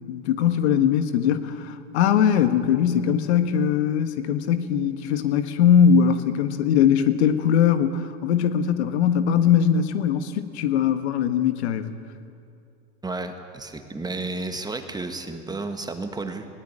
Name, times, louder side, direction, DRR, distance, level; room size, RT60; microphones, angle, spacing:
voice 1, 0.1-11.9, left 8 dB, 70° left, 10 dB, 1.6 m, -21 dB
voice 2, 13.0-16.5, right 3 dB, 10° right, 6 dB, 1.8 m, -32 dB
20.5 x 18.0 x 9.0 m, 2.4 s
hypercardioid pair, 110°, 34 cm